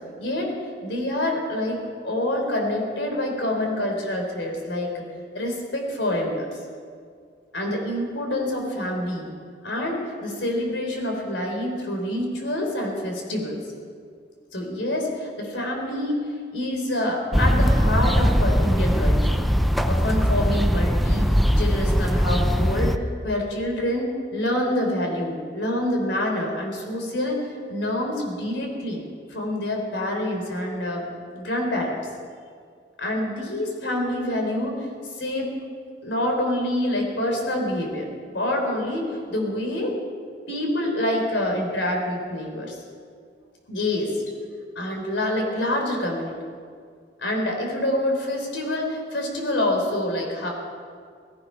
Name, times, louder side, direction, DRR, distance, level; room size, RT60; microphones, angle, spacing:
voice 1, 0.2-0.5 0.8-5.0 5.3-6.5 7.5-9.3 9.6-13.6 14.5-16.2 16.5-19.3 19.9-29.0 29.3-31.0 31.3-32.0 33.0-34.9 35.2-35.5 36.0-40.0 40.5-42.8 43.7-44.1 44.8-46.3 47.2-50.5, left 1 dB, 85° left, 1 dB, 3.6 m, -26 dB
sound 1, 17.3-23.0, equal, ahead, 0.6 m, -20 dB
17.5 x 14.0 x 5.5 m, 2.1 s
head